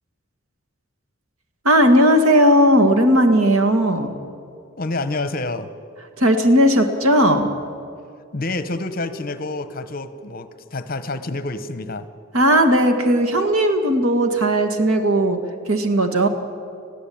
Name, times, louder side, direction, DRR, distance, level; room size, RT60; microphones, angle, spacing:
voice 1, 1.6-4.1 6.2-7.5 12.3-15.4 15.7-16.3, equal, 85° right, 7 dB, 2.0 m, -16 dB
voice 2, 4.8-5.7 8.3-12.1, left 2 dB, 45° left, 12 dB, 1.0 m, -28 dB
21.0 x 14.5 x 8.6 m, 2.4 s
head